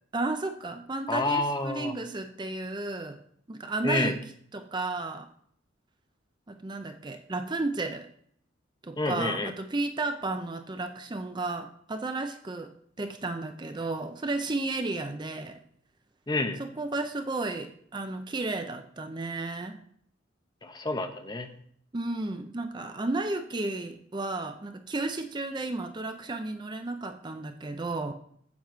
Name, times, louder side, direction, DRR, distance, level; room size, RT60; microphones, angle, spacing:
voice 1, 0.1-3.2 3.5-4.2 4.5-5.3 6.5-8.1 8.8-15.6 16.6-19.8 21.9-28.1, right 2 dB, 25° right, 7 dB, 0.5 m, -33 dB
voice 2, 1.1-1.9 3.8-4.2 9.0-9.5 16.3-16.6 20.6-21.5, left 2 dB, 20° left, 6 dB, 0.7 m, -28 dB
7.8 x 7.3 x 4.5 m, 0.64 s
head